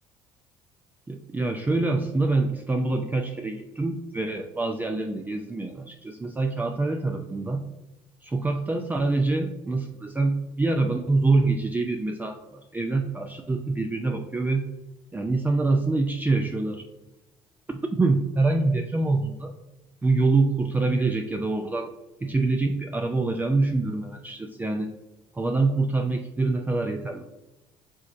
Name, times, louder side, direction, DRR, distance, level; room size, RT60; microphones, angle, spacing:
voice 1, 1.1-7.7 8.2-14.7 15.1-16.9 17.7-19.5 20.0-21.9 22.2-24.9 25.3-27.2, right 3 dB, 15° right, 4 dB, 0.4 m, -25 dB
5.5 x 3.0 x 2.5 m, 1.0 s
hypercardioid pair, 65°, 13 cm